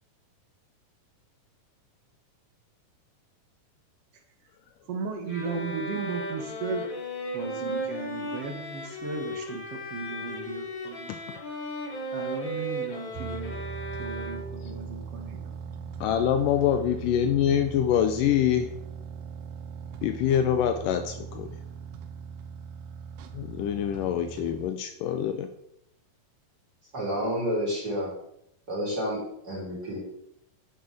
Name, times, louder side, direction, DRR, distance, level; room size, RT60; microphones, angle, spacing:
voice 1, 4.9-6.9 7.3-11.1 12.1-13.6 14.0-15.5, right 4 dB, 55° right, 4 dB, 2.0 m, -35 dB
sound 1, 5.3-14.7, equal, 45° left, 1.7 m, -36 dB
sound 2, 13.2-24.7, right 7 dB, 85° right, 2.3 m, -40 dB
voice 2, 16.0-18.7 20.0-21.5 23.3-25.5, left 9 dB, 80° left, 8 dB, 2.2 m, -25 dB
voice 3, 26.9-28.1 28.7-29.2 29.4-30.0, equal, 30° right, -4 dB, 3.9 m, -29 dB
9.4 x 6.0 x 6.5 m, 0.78 s
omnidirectional pair, 3.9 m